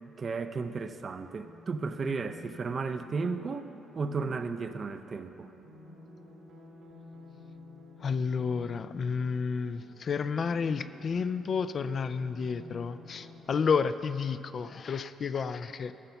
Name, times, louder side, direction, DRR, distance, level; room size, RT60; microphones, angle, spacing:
voice 1, 0.0-3.7 3.9-5.5, right 4 dB, 40° right, 9 dB, 0.5 m, -34 dB
sound 1, 1.3-13.4, left 1 dB, 80° right, 1.8 m, -51 dB
voice 2, 8.0-15.9, left 5 dB, 50° left, 13 dB, 0.3 m, -31 dB
12.0 x 6.7 x 5.8 m, 2.8 s
cardioid pair, 90°, 0 cm